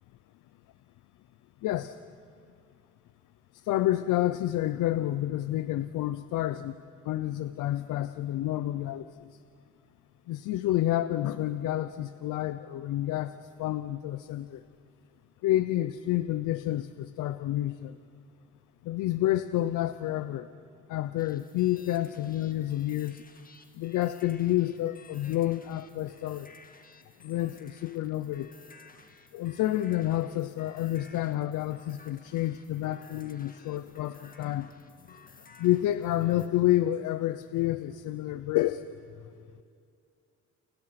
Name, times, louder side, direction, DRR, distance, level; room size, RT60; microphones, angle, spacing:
voice 1, 1.6-2.0 3.5-9.4 10.3-14.6 15.4-18.0 18.8-20.5 20.9-23.2 23.7-26.5 27.2-28.5 29.3-34.7 35.1-35.2 35.6-38.9, left 14 dB, 85° left, 12 dB, 0.8 m, -29 dB
sound 1, 21.2-36.5, left 4 dB, 30° left, 2.0 m, -56 dB
29.5 x 28.5 x 5.9 m, 2.4 s
cardioid pair, 90°, 30 cm